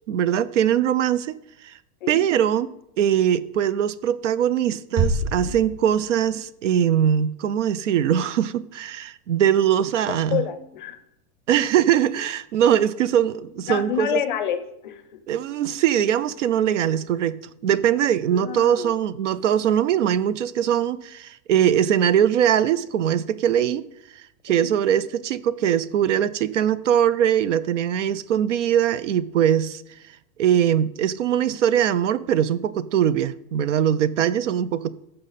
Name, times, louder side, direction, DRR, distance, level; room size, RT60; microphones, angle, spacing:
voice 1, 0.1-1.4 1.6-1.7 2.1-2.7 3.0-10.4 11.5-14.2 15.3-17.4 17.6-23.9 24.1-29.8 30.4-34.9, right 10 dB, 55° right, 0.5 m, -21 dB
sound 1, 5.0-6.6, right 2 dB, 15° right, 0.8 m, -26 dB
voice 2, 10.3-11.0 13.7-15.0 18.3-18.9 24.5-24.7, left 10 dB, 35° left, 0.5 m, -28 dB
14.5 x 6.6 x 4.1 m
supercardioid pair, 180°, 46 cm